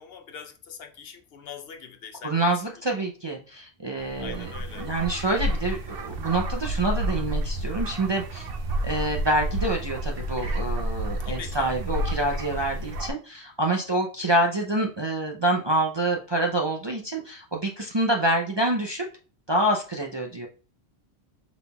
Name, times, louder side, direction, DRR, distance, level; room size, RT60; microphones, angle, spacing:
voice 1, 0.0-3.0 4.2-4.9 11.2-11.7, left 7 dB, 65° left, 0.8 m, -42 dB
voice 2, 2.2-4.5 4.8-8.5 8.8-19.0 19.5-20.5, right 1 dB, 35° right, 0.5 m, -26 dB
sound 1, 4.0-13.1, right 1 dB, 65° right, 0.9 m, -30 dB
5.5 x 4.0 x 2.3 m
omnidirectional pair, 1.1 m